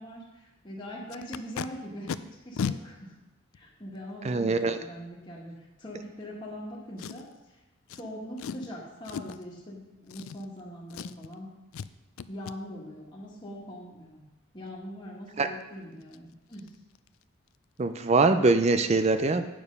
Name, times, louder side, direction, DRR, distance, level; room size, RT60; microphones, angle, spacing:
voice 1, 0.0-3.1 3.5-7.6 7.9-11.5 12.3-14.2 14.5-16.7, equal, 20° left, -5 dB, 1.6 m, -42 dB
Packing tape duct tape, 1.1-1.7 2.1-2.2 2.6-2.8 3.5-3.6 7.0-7.4 7.9-8.0 8.4-8.7 9.1-9.4 10.1-10.6 10.9-11.4 11.7-11.9 12.2-12.6 15.6-15.7 16.0-16.2 16.5-16.7 17.0-17.2 17.5-17.6, left 6 dB, 85° left, 0.4 m, -36 dB
voice 2, 4.2-4.8 15.4-15.5 17.8-19.5, right 3 dB, 30° right, 9 dB, 0.4 m, -23 dB
8.7 x 6.9 x 5.3 m, 1.0 s
head